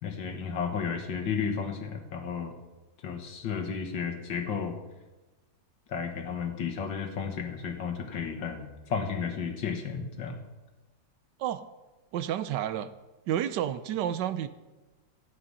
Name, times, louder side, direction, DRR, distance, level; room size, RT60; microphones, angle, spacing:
voice 1, 0.0-2.6 3.0-4.8 5.9-10.4, left 6 dB, 80° left, 5 dB, 2.1 m, -33 dB
voice 2, 12.1-12.9 13.3-14.5, right 11 dB, 75° right, 13 dB, 1.2 m, -30 dB
13.5 x 8.8 x 5.5 m, 1.1 s
omnidirectional pair, 2.0 m